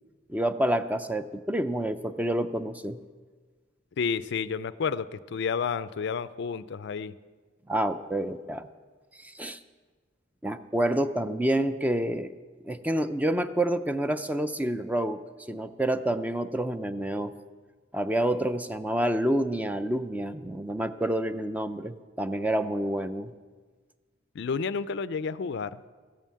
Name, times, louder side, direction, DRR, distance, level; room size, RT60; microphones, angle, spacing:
voice 1, 0.3-3.0 7.7-8.7 9.2-9.6 10.4-12.3 12.6-15.2 15.5-17.4 17.9-23.3, right 1 dB, 10° right, 11 dB, 0.4 m, -28 dB
voice 2, 4.0-7.1 24.3-25.8, left 5 dB, 65° left, 16 dB, 0.4 m, -30 dB
14.5 x 9.0 x 7.4 m, 1.5 s
head